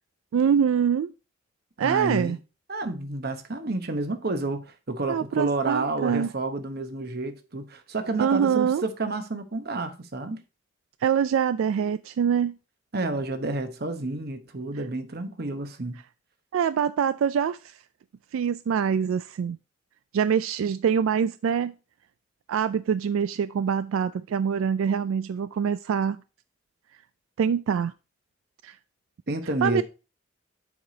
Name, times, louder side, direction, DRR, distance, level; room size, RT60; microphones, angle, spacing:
voice 1, 0.3-1.1 1.8-2.4 5.1-6.3 8.2-8.8 11.0-12.5 16.5-17.7 18.3-19.6 20.1-21.7 22.5-26.2 27.4-27.9 28.6-28.8 29.6-29.8, right 7 dB, 85° right, 0.3 m, -24 dB
voice 2, 1.8-2.4 2.7-10.4 12.9-16.0 29.3-29.8, right 2 dB, 50° right, 1.0 m, -30 dB
7.2 x 4.9 x 3.9 m
head